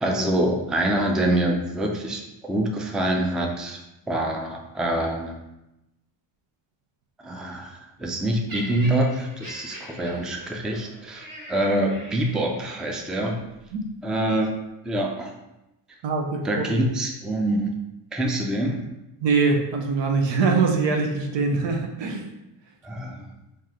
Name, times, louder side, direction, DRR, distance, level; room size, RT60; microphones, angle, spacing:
voice 1, 0.0-3.8 4.1-5.4 7.2-13.4 14.0-14.6 14.8-15.3 16.4-17.8 18.1-18.8 22.8-23.3, right 1 dB, ahead, 1 dB, 0.4 m, -25 dB
Laughter, 8.5-12.7 13.5-13.7, equal, 45° right, 1.2 m, -41 dB
voice 2, 16.0-16.7 19.2-22.3, right 4 dB, 70° right, 2 dB, 0.8 m, -23 dB
3.1 x 2.8 x 3.6 m, 0.92 s
supercardioid pair, 75°, 46 cm